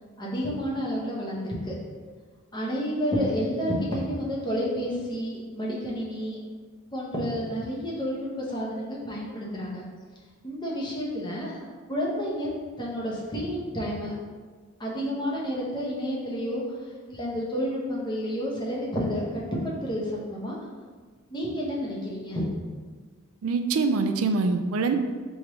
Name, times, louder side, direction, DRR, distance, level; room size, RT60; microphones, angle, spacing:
voice 1, 0.2-1.7 2.5-6.4 6.9-9.8 10.4-11.6 11.9-12.5 12.8-14.1 14.8-16.6 17.1-19.4 19.8-20.5 21.3-22.4, equal, 20° left, -4 dB, 0.9 m, -30 dB
voice 2, 23.4-25.0, right 4 dB, 80° right, 7 dB, 0.4 m, -24 dB
3.6 x 3.1 x 4.8 m, 1.5 s
head